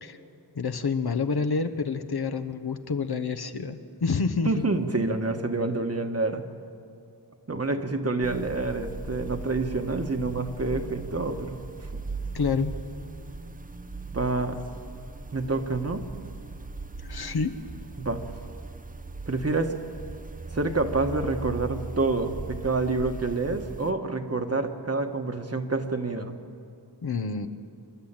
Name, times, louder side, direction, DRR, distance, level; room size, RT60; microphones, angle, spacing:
voice 1, 0.5-4.5 12.3-12.7 17.0-17.5 27.0-27.5, left 5 dB, 65° left, 9 dB, 1.0 m, -28 dB
voice 2, 4.4-6.4 7.5-11.6 14.1-14.6 15.3-16.0 18.0-18.2 19.3-19.7 20.5-26.3, right 3 dB, 35° right, 6 dB, 1.4 m, -27 dB
sound 1, 8.2-23.9, right 3 dB, 20° right, 0.7 m, -39 dB
27.0 x 11.5 x 8.9 m, 2.4 s
wide cardioid pair, 100°, 42 cm